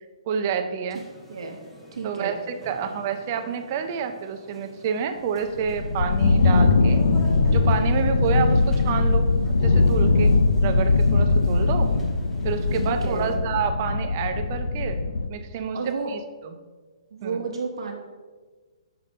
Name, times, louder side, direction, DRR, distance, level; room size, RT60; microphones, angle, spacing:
voice 1, 0.3-1.0 2.0-2.3 2.7-7.0 7.5-9.3 9.6-11.9 12.4-15.0 15.3-15.8 16.1-16.2 17.2-17.4, right 7 dB, 20° right, 7 dB, 0.4 m, -28 dB
sound 1, 0.9-13.4, right 1 dB, 5° left, 0.9 m, -47 dB
voice 2, 1.9-2.4 2.8-2.9 12.8-13.3 15.7-16.1 17.1-17.9, right 4 dB, 50° right, 2 dB, 0.9 m, -31 dB
sound 2, 5.6-15.3, left 3 dB, 65° left, 0.5 m, -21 dB
7.4 x 5.7 x 5.1 m, 1.4 s
hypercardioid pair, 180°, 3 cm